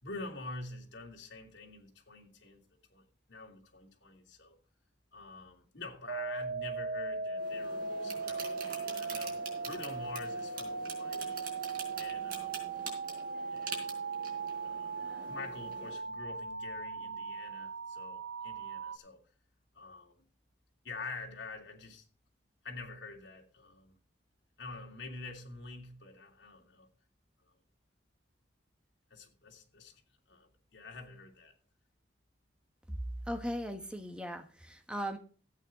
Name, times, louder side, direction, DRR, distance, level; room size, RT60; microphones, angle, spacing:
voice 1, 0.0-2.6 2.9-4.6 5.1-11.4 12.0-12.6 13.5-13.9 14.6-19.2 19.7-20.2 20.8-22.1 22.6-23.9 24.6-26.9 27.4-27.5 29.1-30.0 30.3-31.5, left 3 dB, 75° left, 2.8 m, -47 dB
sound 1, 6.1-19.0, right 4 dB, 75° right, 0.6 m, -38 dB
sound 2, 7.4-16.0, right 4 dB, 50° right, 4.1 m, -45 dB
voice 2, 33.3-35.2, equal, 5° right, 1.3 m, -38 dB
14.5 x 8.8 x 3.8 m
head